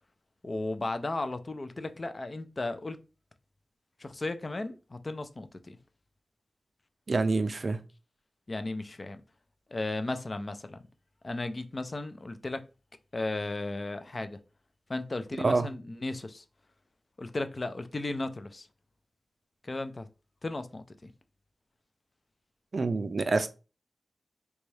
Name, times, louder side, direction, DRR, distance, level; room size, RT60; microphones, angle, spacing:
voice 1, 0.4-3.0 4.0-5.8 8.5-9.2 9.7-10.8 11.2-12.6 13.1-14.4 14.9-16.4 17.2-18.7 19.6-20.1 20.4-21.1, left 2 dB, 35° left, 0.4 m, -35 dB
voice 2, 7.1-7.8 15.4-15.7 22.7-23.5, right 3 dB, 50° right, 0.4 m, -26 dB
3.9 x 2.3 x 3.2 m
wide cardioid pair, 100°, 0 cm